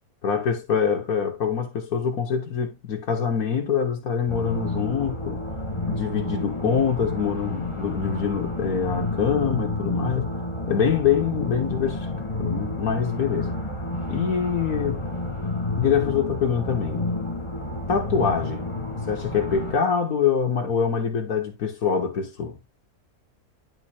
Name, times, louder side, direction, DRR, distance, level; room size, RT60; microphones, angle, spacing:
voice 1, 0.2-5.4 5.8-10.3 10.7-12.1 12.4-13.5 14.1-15.1 15.8-17.1 17.9-18.7 19.1-22.6, left 7 dB, 75° left, 1.8 m, -25 dB
sound 1, 4.3-19.7, left 2 dB, 20° left, 1.6 m, -30 dB
10.5 x 4.0 x 4.2 m
omnidirectional pair, 1.6 m